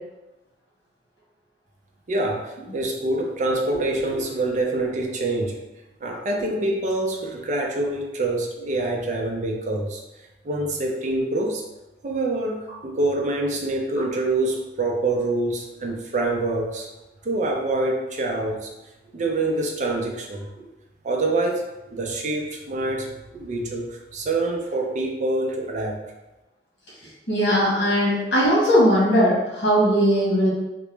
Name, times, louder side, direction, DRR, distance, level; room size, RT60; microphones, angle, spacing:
voice 1, 2.1-5.6 6.0-10.0 10.4-11.6 12.0-16.9 17.2-18.7 19.1-20.5 21.0-26.0, right 2 dB, 45° right, 0 dB, 0.5 m, -26 dB
voice 2, 27.3-30.5, equal, 80° left, -6 dB, 1.3 m, -19 dB
2.9 x 2.2 x 3.2 m, 1.0 s
head